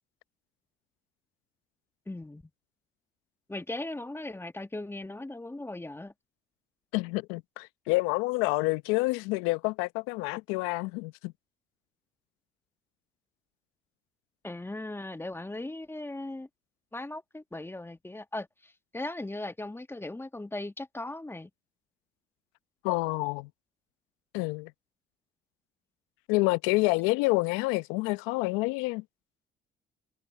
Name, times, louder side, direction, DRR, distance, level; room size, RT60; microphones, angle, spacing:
voice 1, 2.1-2.4 3.5-6.1 14.4-16.5 16.9-21.5, left 2 dB, 10° left, 1.4 m, -38 dB
voice 2, 6.9-11.3 22.8-23.5 24.3-24.7 26.3-29.0, left 24 dB, 80° left, 0.8 m, -28 dB
hypercardioid pair, 65°, 21 cm